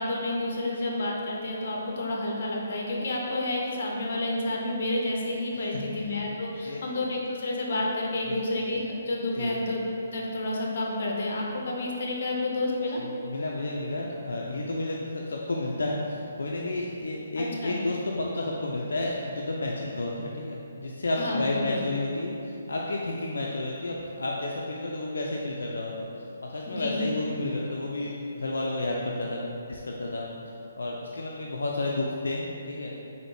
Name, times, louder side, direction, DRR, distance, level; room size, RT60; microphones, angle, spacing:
voice 1, 0.0-9.8 10.1-13.0 17.4-17.8 21.2-21.8 26.7-27.1, left 2 dB, 55° left, -1 dB, 0.7 m, -30 dB
voice 2, 13.0-26.1 26.4-30.3 30.8-32.9, left 2 dB, 85° left, -2 dB, 0.3 m, -31 dB
4.0 x 2.7 x 3.2 m, 2.8 s
hypercardioid pair, 155°, 0 cm